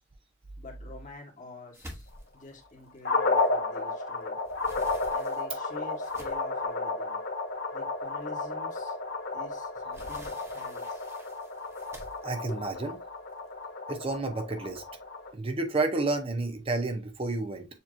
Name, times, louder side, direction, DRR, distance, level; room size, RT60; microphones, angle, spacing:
voice 1, 0.6-4.4 5.1-7.2 7.7-9.0 9.3-11.1 12.5-12.6, left 2 dB, 40° left, 1.6 m, -47 dB
sound 1, 1.7-3.9 4.2-6.6 7.3-7.4 7.8-8.0 9.3-13.6, equal, 15° right, 1.1 m, -49 dB
sound 2, 3.0-15.3, left 3 dB, 70° left, 1.1 m, -32 dB
voice 2, 12.2-12.9 13.9-14.8 15.3-17.7, right 2 dB, 30° right, 0.7 m, -30 dB
6.9 x 2.9 x 2.6 m
head